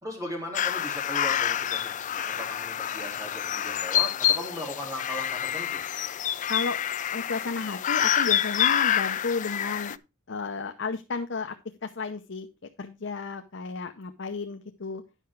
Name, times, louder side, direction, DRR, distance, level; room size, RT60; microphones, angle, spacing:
voice 1, 0.0-5.8, left 1 dB, 20° right, 1 dB, 3.6 m, -38 dB
sound 1, 0.5-10.0, left 10 dB, 40° left, 0.4 m, -27 dB
voice 2, 7.1-10.0 10.3-11.6 11.8-12.5 12.8-15.0, left 4 dB, 65° left, 6 dB, 0.7 m, -32 dB
10.0 x 5.8 x 4.6 m, 0.27 s
head